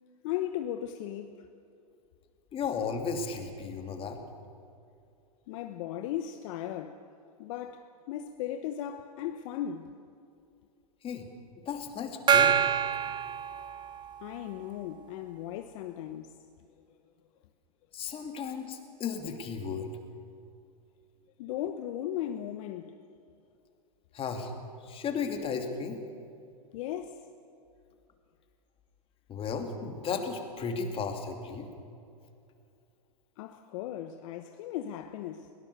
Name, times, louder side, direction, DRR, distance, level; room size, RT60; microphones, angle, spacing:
voice 1, 0.2-1.5 5.5-7.0 7.4-9.9 14.2-16.3 21.4-22.9 26.7-27.2 33.4-35.5, left 11 dB, 55° left, 1.0 m, -37 dB
voice 2, 2.5-4.2 11.0-11.3 11.7-12.6 17.9-19.9 24.1-24.6 24.8-26.0 29.3-31.7, left 5 dB, 30° left, 2.7 m, -34 dB
Gong, 12.3-14.3, right 8 dB, 20° right, 0.9 m, -26 dB
21.5 x 18.0 x 6.9 m
hypercardioid pair, 115°, 20 cm